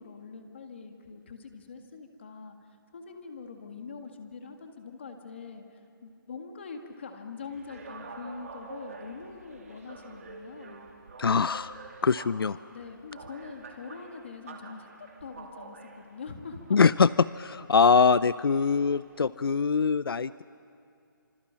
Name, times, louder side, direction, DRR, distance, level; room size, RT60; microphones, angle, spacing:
voice 1, 0.0-2.6 2.9-10.9 12.7-16.8, left 4 dB, 30° left, 5 dB, 1.8 m, -43 dB
sound 1, 7.4-19.3, right 4 dB, 40° right, 2.8 m, -48 dB
voice 2, 11.2-11.7 12.0-12.6 16.7-17.1 17.4-20.4, left 5 dB, 85° left, 17 dB, 0.5 m, -23 dB
26.5 x 26.0 x 7.5 m, 2.6 s
hypercardioid pair, 180°, 12 cm